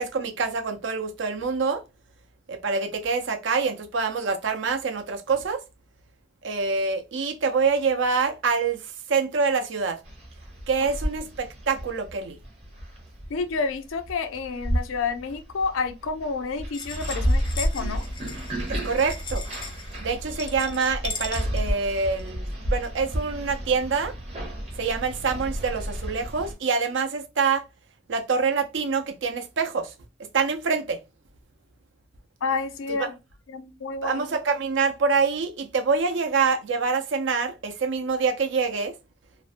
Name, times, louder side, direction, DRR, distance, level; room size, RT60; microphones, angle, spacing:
voice 1, 0.0-1.8 2.5-5.6 6.4-8.8 9.1-10.0 10.7-12.4 18.7-19.4 20.0-24.1 24.8-27.6 28.1-29.9 30.3-31.0 33.0-33.1 34.0-38.9, right 5 dB, 65° right, 0.5 m, -25 dB
sound 1, 10.0-26.5, equal, 30° right, 0.8 m, -31 dB
voice 2, 13.3-18.1 32.4-33.1 33.5-34.2, left 4 dB, 80° left, 0.4 m, -29 dB
sound 2, 16.7-22.3, left 4 dB, 25° left, 0.4 m, -38 dB
2.5 x 2.1 x 2.4 m
head